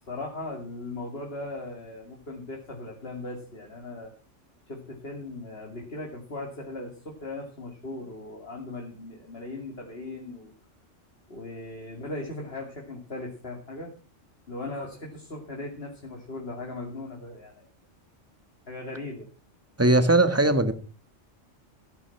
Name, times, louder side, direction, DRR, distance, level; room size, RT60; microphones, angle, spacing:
voice 1, 0.1-4.1 4.7-10.5 11.3-13.9 14.5-17.7 18.7-19.3, left 2 dB, 55° left, 0 dB, 2.8 m, -38 dB
voice 2, 19.8-20.7, right 2 dB, 10° right, 9 dB, 1.6 m, -19 dB
14.5 x 11.5 x 5.9 m, 0.38 s
omnidirectional pair, 1.3 m